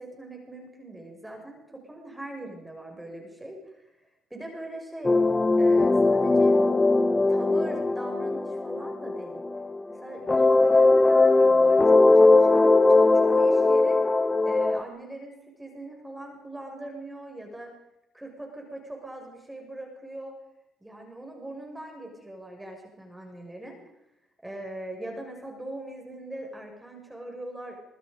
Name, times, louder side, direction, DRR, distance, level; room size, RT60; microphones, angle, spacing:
voice 1, 0.0-3.8 4.3-5.1 5.6-6.5 7.3-9.4 9.9-14.0 14.4-15.3 15.6-17.7 18.1-20.3 20.8-23.8 24.4-27.7, right 1 dB, 10° right, 2 dB, 6.3 m, -41 dB
sound 1, 5.0-9.9 10.3-14.8, left 2 dB, 20° left, 1.0 m, -20 dB
24.0 x 23.5 x 5.3 m, 0.85 s
cardioid pair, 90°, 0 cm